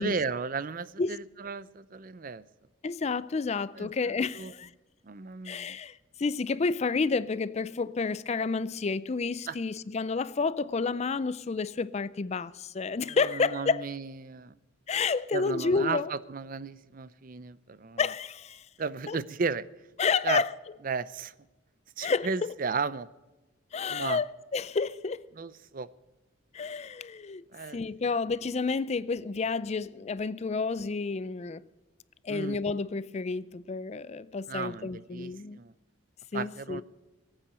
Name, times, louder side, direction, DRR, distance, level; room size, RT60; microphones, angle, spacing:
voice 1, 0.0-2.4 3.8-4.5 5.0-5.8 9.5-9.6 13.0-14.5 15.3-18.0 18.8-19.6 20.2-20.4 20.8-21.3 22.0-23.1 23.9-24.2 25.4-25.9 27.5-27.8 32.3-32.6 34.5-35.7 36.3-36.8, right 4 dB, 45° right, 0.5 m, -34 dB
voice 2, 2.8-4.7 5.4-13.8 14.9-16.1 18.0-18.7 19.1-19.2 20.0-20.5 22.0-22.5 23.7-25.3 26.5-27.4 27.7-31.6 32.2-35.6 36.3-36.8, left 4 dB, 35° left, 0.4 m, -30 dB
18.5 x 8.9 x 6.8 m
head